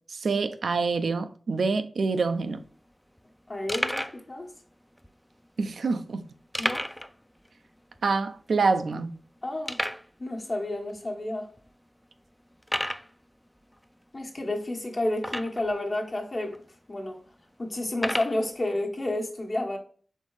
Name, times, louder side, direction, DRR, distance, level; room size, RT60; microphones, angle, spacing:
voice 1, 0.1-2.6 5.6-6.2 8.0-9.1, right 4 dB, 85° right, 0.4 m, -26 dB
sound 1, 2.2-2.3 2.5-2.7 3.2-3.3 3.7-4.2 5.0-5.1 6.5-7.1 7.4-7.5 8.0-8.1 8.6-8.7 9.7-10.1 10.9-11.0 11.6-11.7 12.6-13.1 15.2-15.7 16.5-16.6 17.9-18.4, equal, 5° left, 0.3 m, -31 dB
voice 2, 3.5-4.5 6.6-6.9 9.4-9.8 10.2-11.5 14.1-16.6 16.9-17.2 17.6-19.8, left 1 dB, 50° left, 1.2 m, -30 dB
4.3 x 3.5 x 3.2 m
cardioid pair, 50°, 0 cm